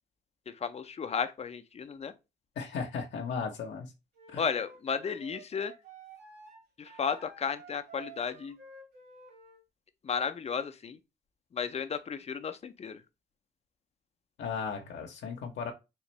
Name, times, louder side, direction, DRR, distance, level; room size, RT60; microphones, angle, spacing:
voice 1, 0.5-2.1 4.4-5.7 6.8-8.6 10.0-11.0 11.5-13.0, left 6 dB, 30° left, 0.5 m, -34 dB
voice 2, 2.6-3.9 4.3-4.4 14.4-15.7, left 5 dB, 65° left, 0.8 m, -36 dB
Wind instrument woodwind instrument, 4.1-9.6, right 4 dB, 60° right, 2.0 m, -52 dB
3.7 x 2.5 x 3.1 m
cardioid pair, 90°, 20 cm